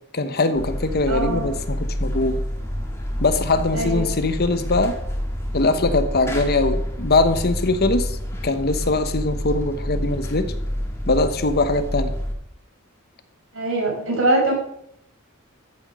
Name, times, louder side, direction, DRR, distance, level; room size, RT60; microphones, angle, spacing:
voice 1, 0.1-2.4 3.2-4.9 5.5-8.2 8.4-10.5 11.1-12.1, left 2 dB, 45° left, 10 dB, 1.0 m, -21 dB
sound 1, 0.5-12.3, equal, 10° left, 2.0 m, -28 dB
voice 2, 1.1-1.5 3.7-4.0 13.5-14.5, right 2 dB, 70° right, -2 dB, 5.4 m, -22 dB
13.5 x 7.1 x 6.2 m, 0.74 s
head